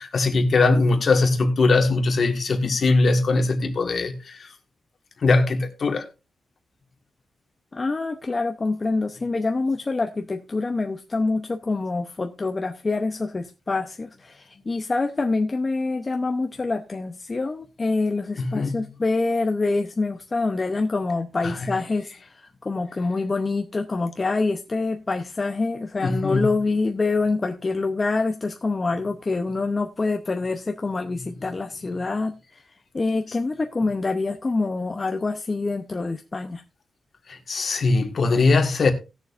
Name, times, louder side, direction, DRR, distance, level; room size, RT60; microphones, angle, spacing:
voice 1, 0.0-4.5 5.2-6.0 18.4-18.8 21.4-21.5 26.0-26.5 37.3-38.9, left 3 dB, 50° left, 1.6 m, -21 dB
voice 2, 7.7-32.6 32.9-36.6, left 3 dB, 25° left, 0.7 m, -26 dB
18.5 x 6.9 x 2.5 m
wide cardioid pair, 135°, 0 cm